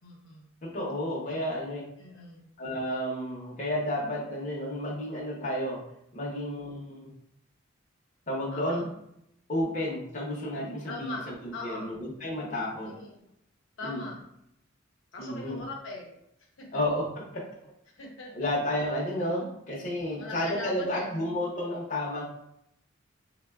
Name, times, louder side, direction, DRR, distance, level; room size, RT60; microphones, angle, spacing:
voice 1, 0.0-0.5 1.3-1.5 2.0-2.4 8.5-8.9 10.9-11.2 11.5-11.9 12.8-13.2 13.8-14.2 15.1-16.1 16.6-16.8 17.9-18.3 20.1-21.3, left 2 dB, 75° left, -2 dB, 0.8 m, -41 dB
voice 2, 0.6-1.8 2.6-5.8 6.1-7.1 8.3-8.9 9.5-13.0 13.8-14.0 15.2-15.6 16.7-17.1 17.3-17.4 18.3-22.2, left 1 dB, 40° left, -4 dB, 0.7 m, -31 dB
3.7 x 2.1 x 2.2 m, 0.77 s
head